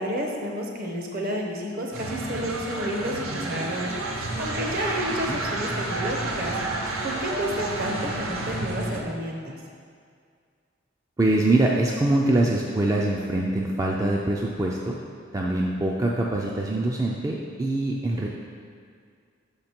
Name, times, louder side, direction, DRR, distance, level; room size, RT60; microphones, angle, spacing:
voice 1, 0.0-3.9 4.4-6.5 7.0-9.6, equal, 50° right, 0 dB, 0.9 m, -30 dB
sound 1, 1.9-9.0, right 2 dB, 85° right, 0.7 m, -30 dB
voice 2, 11.2-15.0 15.3-18.3, right 2 dB, 15° right, -2 dB, 0.4 m, -24 dB
6.3 x 5.2 x 4.4 m, 2.1 s
head